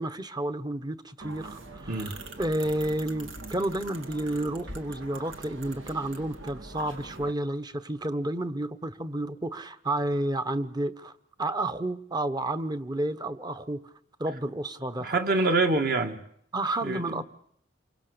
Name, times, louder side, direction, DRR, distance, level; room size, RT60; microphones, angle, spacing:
voice 1, 0.0-11.1 11.4-13.8 14.2-15.1 16.5-17.2, right 1 dB, 20° right, 1.1 m, -31 dB
sound 1, 1.2-7.3, right 2 dB, 80° right, 2.5 m, -43 dB
voice 2, 15.0-16.2 16.8-17.2, right 3 dB, 50° right, 2.3 m, -26 dB
28.5 x 24.0 x 6.9 m
head